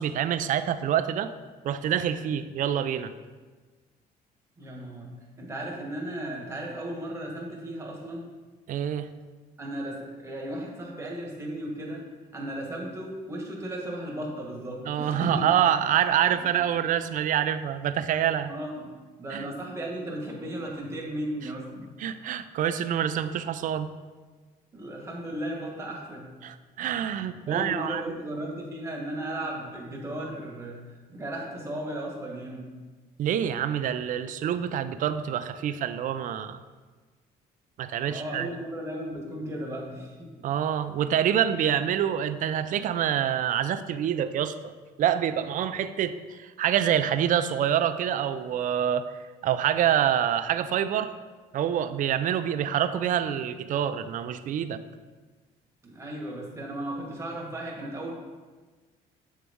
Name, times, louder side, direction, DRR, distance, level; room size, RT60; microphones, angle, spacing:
voice 1, 0.0-1.3 1.6-3.1 8.7-9.1 14.9-18.5 19.3-19.5 22.0-23.9 26.4-28.1 33.2-36.6 37.8-38.5 40.4-44.5 45.0-49.0 49.4-51.1 51.5-54.8, right 9 dB, 50° right, 11 dB, 0.4 m, -26 dB
voice 2, 4.6-8.3 9.6-12.1 12.3-15.5 16.4-16.5 18.5-18.9 19.2-21.9 24.7-26.3 27.5-32.7 38.0-40.5 55.8-58.1, right 1 dB, 15° right, -1 dB, 1.3 m, -35 dB
7.4 x 3.9 x 3.5 m, 1.4 s
cardioid pair, 110°, 17 cm